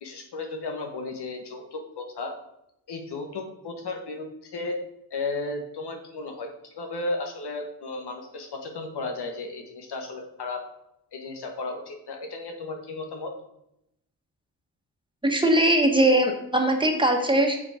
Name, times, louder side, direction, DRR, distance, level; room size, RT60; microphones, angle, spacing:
voice 1, 0.0-2.3 2.9-4.8 5.1-10.6 11.1-13.3, left 3 dB, 85° left, 3 dB, 1.6 m, -34 dB
voice 2, 15.2-17.6, right 1 dB, 10° right, 2 dB, 1.4 m, -21 dB
7.1 x 6.0 x 5.0 m, 0.81 s
wide cardioid pair, 115°, 39 cm